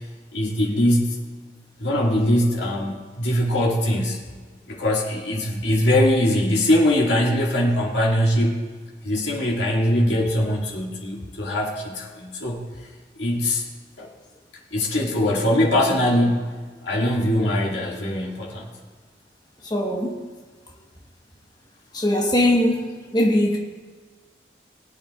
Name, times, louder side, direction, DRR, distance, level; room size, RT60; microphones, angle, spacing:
voice 1, 0.3-1.2 1.8-4.2 4.7-8.6 9.0-12.6 13.2-13.6 14.0-14.1 14.7-18.7, left 1 dB, 85° left, -2 dB, 2.1 m, -22 dB
voice 2, 19.6-20.2 21.9-23.6, left 1 dB, 25° left, -1 dB, 1.2 m, -21 dB
20.5 x 8.6 x 2.4 m, 1.4 s
head